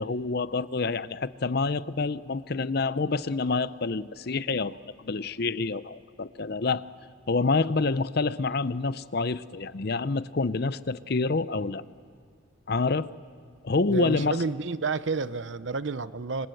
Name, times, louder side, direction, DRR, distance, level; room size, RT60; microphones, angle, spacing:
voice 1, 0.0-6.9 7.3-11.8 12.7-13.1 13.6-14.4, left 3 dB, 50° left, 15 dB, 0.6 m, -27 dB
voice 2, 13.9-16.5, right 4 dB, 65° right, 14 dB, 0.8 m, -30 dB
27.5 x 26.0 x 7.8 m, 2.3 s
head